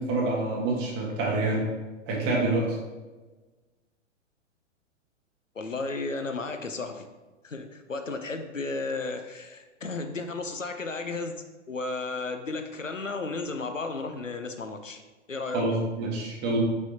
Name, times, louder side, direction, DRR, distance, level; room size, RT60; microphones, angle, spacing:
voice 1, 0.0-1.6 2.1-2.8 15.5-16.6, right 2 dB, 25° right, -2 dB, 1.8 m, -27 dB
voice 2, 5.6-7.1 7.4-11.3 11.7-15.0 15.3-15.6, left 3 dB, 90° left, 7 dB, 0.7 m, -33 dB
6.3 x 5.5 x 2.9 m, 1.2 s
figure-of-eight pair, 110°, 37 cm